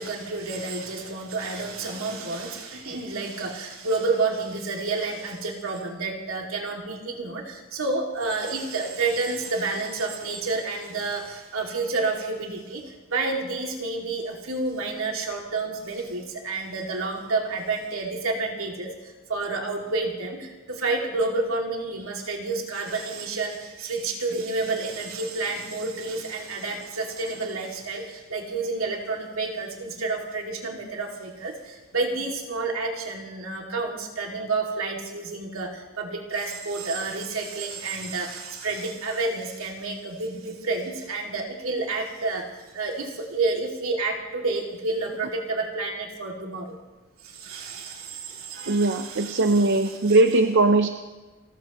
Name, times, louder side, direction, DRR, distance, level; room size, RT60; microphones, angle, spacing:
voice 1, 0.0-46.8 47.2-50.2, right 3 dB, 80° right, 0 dB, 2.5 m, -30 dB
voice 2, 48.7-50.9, right 2 dB, 60° right, 7 dB, 0.7 m, -20 dB
28.5 x 14.5 x 3.1 m, 1.2 s
head